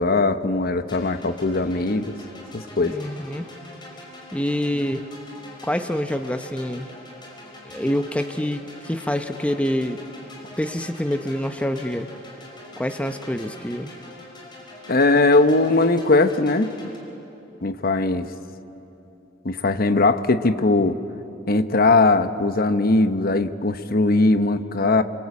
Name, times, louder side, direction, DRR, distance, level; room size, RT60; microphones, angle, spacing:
voice 1, 0.0-2.1 2.5-3.0 14.9-16.7 17.6-18.3 19.4-21.0 21.5-25.0, left 2 dB, 50° left, 10 dB, 1.0 m, -19 dB
sound 1, 0.8-17.0, left 1 dB, 25° left, 4.9 m, -43 dB
voice 2, 2.9-3.5 4.3-5.0 5.6-6.9 7.6-10.0 10.6-12.1 12.8-13.9, equal, 5° left, 7 dB, 0.8 m, -26 dB
26.5 x 26.0 x 8.4 m, 2.9 s
head